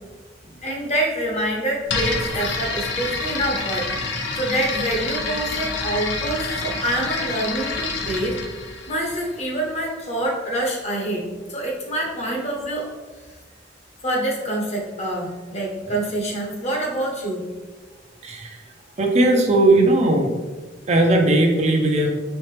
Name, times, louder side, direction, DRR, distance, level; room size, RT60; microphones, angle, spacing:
voice 1, 0.4-3.9 4.3-8.4 8.9-12.9 14.0-17.5, right 1 dB, 35° left, -1 dB, 1.0 m, -26 dB
sound 1, 1.9-9.7, left 3 dB, 75° left, 0.6 m, -28 dB
voice 2, 18.2-18.6 19.0-20.3 20.9-22.1, right 2 dB, 35° right, 2 dB, 0.5 m, -17 dB
4.3 x 3.7 x 3.3 m, 1.3 s
head